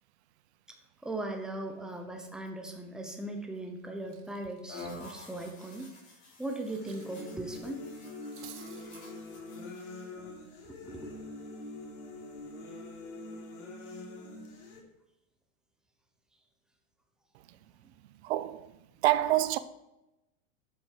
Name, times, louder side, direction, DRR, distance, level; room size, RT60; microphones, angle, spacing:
voice 1, 1.0-5.9 6.4-7.8 10.7-11.1, right 2 dB, ahead, 0.8 m, -39 dB
Cutlery silverware, 3.4-3.7 4.0-7.2 7.4-7.6 8.0-9.0, right 10 dB, 30° right, 1.3 m, -54 dB
sound 1, 4.7-10.1, left 2 dB, 25° left, 3.1 m, -49 dB
sound 2, 6.8-14.8, left 2 dB, 55° left, 3.5 m, -44 dB
voice 2, 18.2-18.7 19.0-19.6, right 14 dB, 50° right, 0.8 m, -26 dB
12.5 x 7.7 x 4.6 m
supercardioid pair, 165°, 42 cm